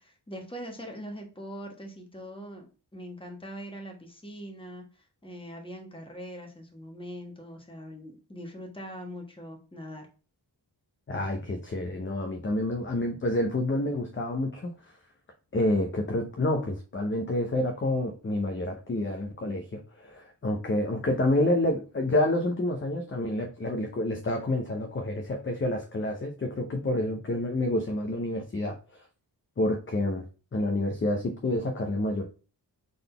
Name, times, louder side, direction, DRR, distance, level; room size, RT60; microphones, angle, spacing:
voice 1, 0.0-10.1, equal, 10° left, 1 dB, 1.3 m, -42 dB
voice 2, 11.1-14.7 15.5-28.8 29.6-30.2 30.5-32.2, left 1 dB, 30° left, 3 dB, 0.7 m, -28 dB
3.9 x 3.9 x 3.3 m, 0.36 s
wide cardioid pair, 110°, 42 cm